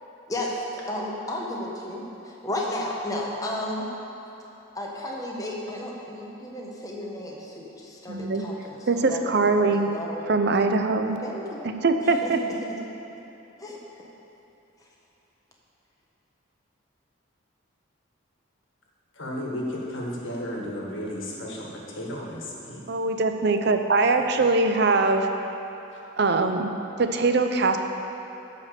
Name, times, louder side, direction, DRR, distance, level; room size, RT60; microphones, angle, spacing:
voice 1, 0.3-2.0 2.4-3.9 4.7-10.2 11.2-11.7 12.2-12.3 13.6-13.8, left 1 dB, 15° left, -2 dB, 1.2 m, -33 dB
voice 2, 8.1-8.5 8.9-9.9 10.3-11.2 11.6-12.4 22.9-25.3 26.2-26.7 27.0-27.8, right 3 dB, 55° right, 6 dB, 0.6 m, -22 dB
voice 3, 19.2-22.8, equal, 70° left, -2 dB, 1.8 m, -33 dB
12.0 x 5.2 x 6.9 m, 3.0 s
head